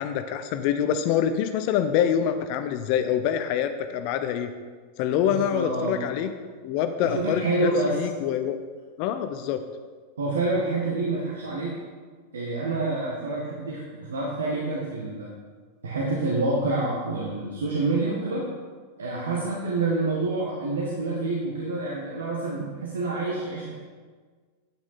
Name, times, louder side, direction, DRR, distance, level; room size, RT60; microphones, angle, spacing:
voice 1, 0.0-4.5 5.0-6.3 6.6-8.6 9.0-9.6, left 9 dB, 45° left, 9 dB, 0.6 m, -25 dB
voice 2, 5.2-6.0 7.0-8.1 10.2-11.8 12.3-15.3 15.8-18.5 19.0-23.7, right 2 dB, 70° right, -4 dB, 1.5 m, -27 dB
8.8 x 8.5 x 4.3 m, 1.5 s
figure-of-eight pair, 90°, 0 cm